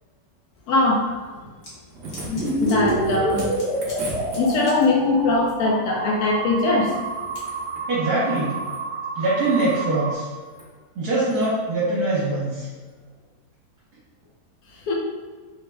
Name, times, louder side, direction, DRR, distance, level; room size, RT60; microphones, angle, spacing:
voice 1, 0.7-1.2 2.6-3.5 4.4-7.2 14.8-14.9, left 2 dB, 70° left, -1 dB, 1.0 m, -21 dB
sound 1, 1.6-1.7 2.1-2.9 3.4-4.9 7.4-7.5, left 1 dB, 45° left, 1.0 m, -41 dB
sound 2, 1.6-4.9 6.9-7.9 8.2-8.9 9.4-9.8 10.5-10.7 11.3-11.5 12.9-13.0, right 1 dB, 85° right, 0.5 m, -39 dB
sound 3, 2.3-10.2, right 1 dB, 50° right, 1.1 m, -28 dB
voice 2, 7.9-8.6 9.2-10.3 11.0-12.7, right 2 dB, 65° right, -7 dB, 1.3 m, -23 dB
3.7 x 2.0 x 3.3 m, 1.4 s
omnidirectional pair, 1.9 m